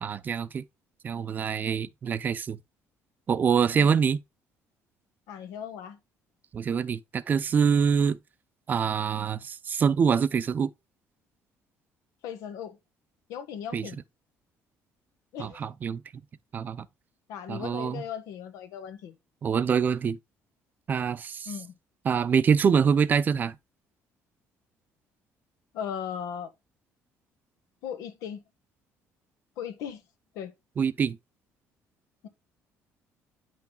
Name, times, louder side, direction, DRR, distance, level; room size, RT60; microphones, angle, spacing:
voice 1, 0.0-0.6 1.0-2.6 3.3-4.2 6.5-8.2 8.7-10.7 13.7-13.9 15.4-16.0 16.5-16.9 17.5-18.0 19.4-20.2 20.9-21.5 22.0-23.6 30.8-31.2, right 6 dB, 35° right, 0.5 m, -25 dB
voice 2, 5.3-6.0 12.2-12.8 13.3-14.0 15.3-15.6 17.3-19.1 21.4-21.7 25.7-26.5 27.8-28.4 29.6-30.0 30.3-30.5 32.2-32.3, left 8 dB, 85° left, 1.3 m, -37 dB
9.5 x 6.0 x 2.2 m
cardioid pair, 140°, 5 cm